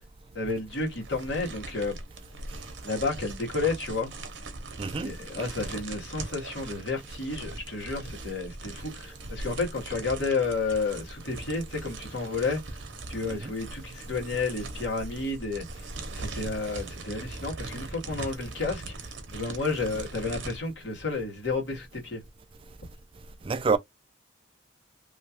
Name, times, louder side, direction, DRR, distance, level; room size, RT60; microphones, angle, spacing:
voice 1, 0.3-2.0 2.8-4.1 5.0-12.8 13.1-22.2, left 3 dB, 60° left, 1.6 m, -31 dB
sound 1, 0.7-20.6, right 2 dB, 65° right, 0.8 m, -40 dB
voice 2, 4.8-5.1 23.4-23.8, right 4 dB, 25° right, 0.3 m, -26 dB
2.9 x 2.4 x 2.8 m
head